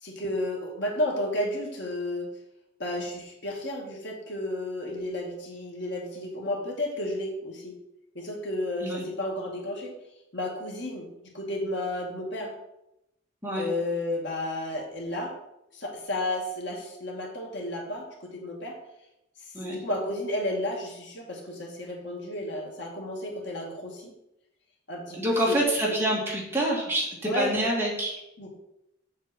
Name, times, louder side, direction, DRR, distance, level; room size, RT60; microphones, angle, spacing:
voice 1, 0.0-2.3 2.8-7.8 8.1-10.0 10.3-11.1 11.3-12.5 13.5-15.3 15.7-18.8 19.7-24.1 24.9-25.6 25.8-26.0 27.2-27.5 28.4-28.5, left 1 dB, 65° left, 0 dB, 2.3 m, -32 dB
voice 2, 25.1-27.1 27.3-28.2, right 1 dB, 10° right, -4 dB, 2.4 m, -26 dB
8.0 x 7.5 x 4.6 m, 0.85 s
head